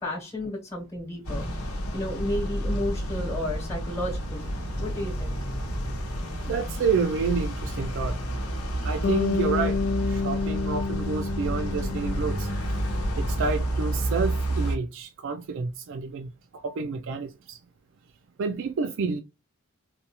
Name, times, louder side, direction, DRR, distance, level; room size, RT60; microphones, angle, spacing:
voice 1, 0.0-5.4, left 1 dB, 15° left, 1.0 m, -33 dB
sound 1, 1.2-14.8, right 1 dB, 85° left, 0.9 m, -30 dB
voice 2, 6.5-8.2 8.8-12.5 13.2-17.6 18.4-19.2, right 5 dB, 60° right, 0.4 m, -29 dB
Bass guitar, 9.0-13.3, left 4 dB, 40° left, 0.5 m, -30 dB
4.1 x 2.3 x 2.8 m
head